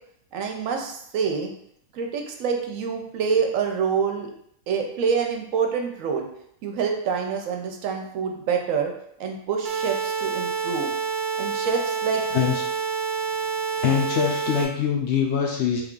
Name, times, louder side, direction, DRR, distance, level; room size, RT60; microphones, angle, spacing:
voice 1, 0.3-1.5 1.9-4.3 4.7-6.3 6.6-8.9 9.2-10.9 11.4-12.2, right 6 dB, 75° right, 3 dB, 1.0 m, -26 dB
sound 1, 9.6-14.6, right 6 dB, 60° right, 0.5 m, -28 dB
voice 2, 13.8-15.8, left 8 dB, 65° left, 0 dB, 0.7 m, -23 dB
3.3 x 2.3 x 3.6 m, 0.71 s
omnidirectional pair, 1.4 m